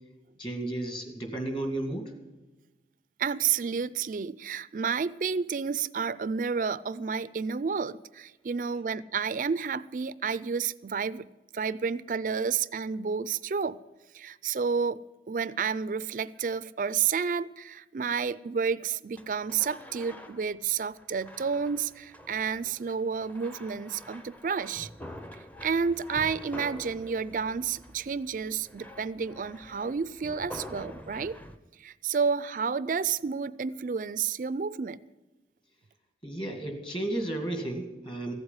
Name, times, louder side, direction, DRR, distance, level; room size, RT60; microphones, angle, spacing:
voice 1, 0.4-2.1 36.2-38.3, right 1 dB, 30° left, 2.2 m, -33 dB
voice 2, 3.2-11.3 11.5-13.8 14.1-15.0 15.3-24.9 25.6-31.4 31.8-35.0, right 6 dB, 45° right, 0.4 m, -30 dB
sound 1, 19.2-31.6, equal, 10° left, 0.6 m, -46 dB
15.0 x 7.9 x 9.9 m
head